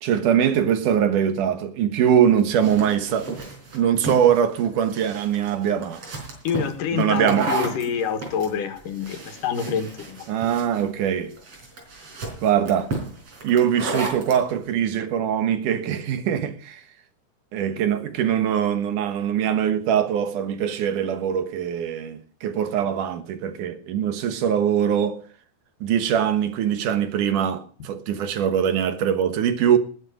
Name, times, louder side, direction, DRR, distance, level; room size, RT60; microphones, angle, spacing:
voice 1, 0.0-3.4 3.7-6.0 6.9-7.5 10.3-11.3 12.4-12.9 13.4-16.8 17.5-25.2 25.8-29.8, right 9 dB, 75° right, 2.8 m, -22 dB
sound 1, 2.1-14.4, right 3 dB, 50° right, 5.1 m, -33 dB
voice 2, 6.4-10.3, left 7 dB, 85° left, 3.2 m, -27 dB
19.0 x 8.1 x 5.0 m
omnidirectional pair, 3.7 m